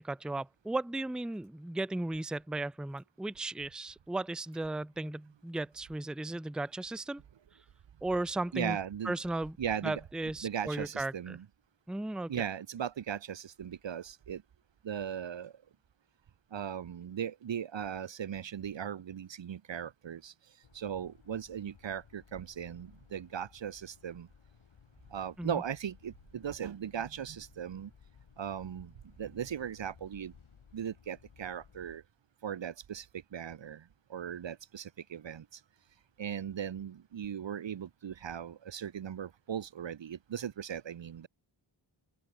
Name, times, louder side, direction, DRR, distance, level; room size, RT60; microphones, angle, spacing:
voice 1, 0.0-7.2 8.0-8.8 9.0-9.6 9.8-11.4 11.9-12.3 25.4-25.6, right 2 dB, ahead, 0.6 m, -35 dB
voice 2, 8.5-9.1 9.6-10.0 10.4-11.5 12.3-14.4 14.8-15.5 16.5-20.3 20.7-24.3 25.1-27.9 28.4-30.3 30.7-32.0 32.4-35.6 36.2-41.3, right 8 dB, 65° right, 0.9 m, -38 dB
sound 1, 20.6-32.0, left 7 dB, 85° left, 2.4 m, -60 dB
open air
wide cardioid pair, 90°, 47 cm